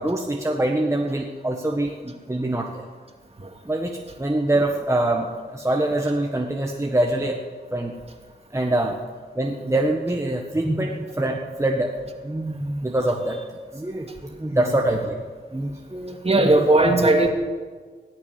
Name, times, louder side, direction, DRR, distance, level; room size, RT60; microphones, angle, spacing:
voice 1, 0.0-2.7 3.7-3.9 4.2-5.3 5.5-7.4 7.7-7.9 8.5-9.0 9.4-11.9 12.2-13.4 13.7-14.1 14.4-15.2 15.5-16.5, right 1 dB, 15° right, 0 dB, 1.5 m, -24 dB
voice 2, 16.2-17.3, right 2 dB, 35° right, 3 dB, 2.3 m, -17 dB
18.0 x 7.2 x 9.7 m, 1.5 s
cardioid pair, 75°, 18 cm